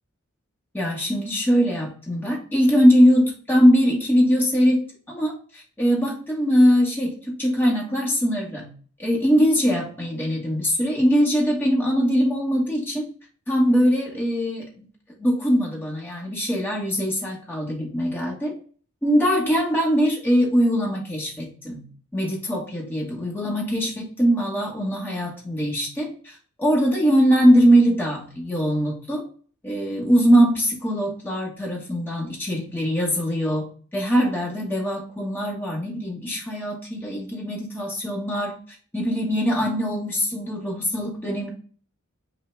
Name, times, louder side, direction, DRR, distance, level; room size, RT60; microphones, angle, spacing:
voice 1, 0.7-8.7 9.0-13.0 13.5-14.7 15.2-18.5 19.0-21.8 22.1-29.2 29.6-33.7 33.9-38.6 38.9-41.5, equal, 10° left, -3 dB, 1.1 m, -21 dB
5.4 x 2.1 x 4.4 m, 0.43 s
head